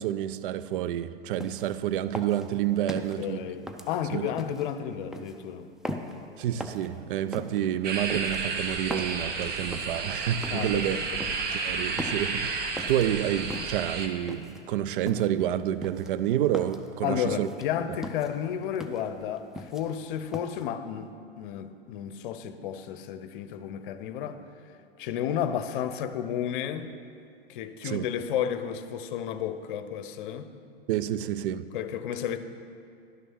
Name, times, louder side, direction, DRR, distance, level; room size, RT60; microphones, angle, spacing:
voice 1, 0.0-3.4 4.1-4.3 6.4-11.0 11.6-17.5 27.8-28.0 30.9-31.7, right 11 dB, 55° right, 0.5 m, -29 dB
sound 1, 1.4-1.8 2.1-3.2 3.7-4.7 5.1-5.4 5.8-6.2 6.6-6.9 7.3-7.6 8.1-9.2 9.7-10.0 10.4-10.7 11.2-11.6 12.0-12.3 12.8-13.1 13.5-13.8 14.3-14.6 15.1-15.4 15.8-16.9 17.3-17.7 18.0-18.3 18.7-19.1 19.4-20.0 20.3-20.6, equal, ahead, 0.5 m, -38 dB
voice 2, 2.9-5.7 10.5-11.2 17.0-24.4 25.0-26.9 27.5-30.5 31.7-32.4, left 9 dB, 55° left, 0.8 m, -32 dB
sound 2, 7.8-14.1, right 4 dB, 30° right, 1.0 m, -32 dB
11.5 x 6.3 x 6.2 m
hypercardioid pair, 95°, 31 cm